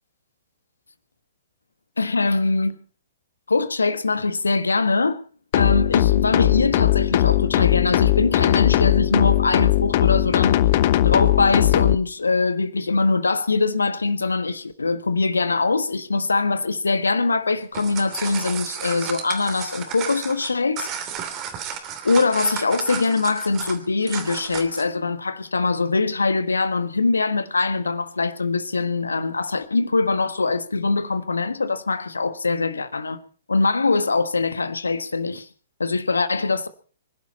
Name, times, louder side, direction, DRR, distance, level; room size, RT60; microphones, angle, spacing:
voice 1, 2.0-2.8 3.5-5.2 5.5-10.6 11.0-20.9 22.0-33.2 33.5-35.5 35.8-36.7, left 3 dB, 80° left, 1.4 m, -22 dB
sound 1, 5.5-12.0, left 14 dB, 45° left, 0.9 m, -19 dB
sound 2, 17.6-24.9, right 8 dB, 30° right, 2.9 m, -33 dB
25.0 x 11.5 x 4.2 m
figure-of-eight pair, 115°, 0 cm